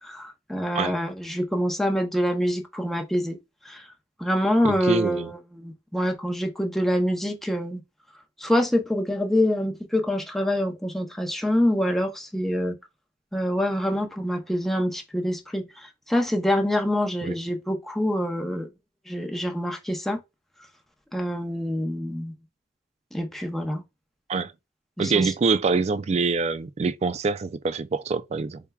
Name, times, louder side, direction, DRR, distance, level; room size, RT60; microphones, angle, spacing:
voice 1, 0.0-3.4 3.6-3.9 4.2-7.8 8.4-12.7 13.3-18.7 19.1-20.2 21.1-22.3 23.1-23.8 25.0-25.3, equal, ahead, 0.7 m, -26 dB
voice 2, 4.6-5.3 17.2-17.4 24.3-24.5 25.0-28.6, right 4 dB, 35° right, 0.3 m, -25 dB
4.4 x 3.4 x 2.3 m
head